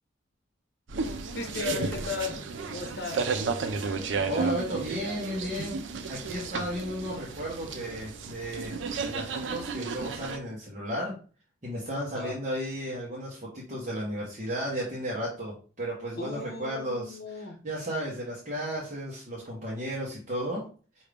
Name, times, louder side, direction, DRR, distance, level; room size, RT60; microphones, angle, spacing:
sound 1, 0.9-10.4, right 4 dB, 80° right, 0.5 m, -33 dB
voice 1, 1.3-3.3 12.1-12.4 16.2-17.6, left 5 dB, 60° left, 0.9 m, -36 dB
voice 2, 4.3-5.7 6.1-11.2 11.6-20.7, equal, 40° right, 1.0 m, -34 dB
4.9 x 2.7 x 3.4 m
head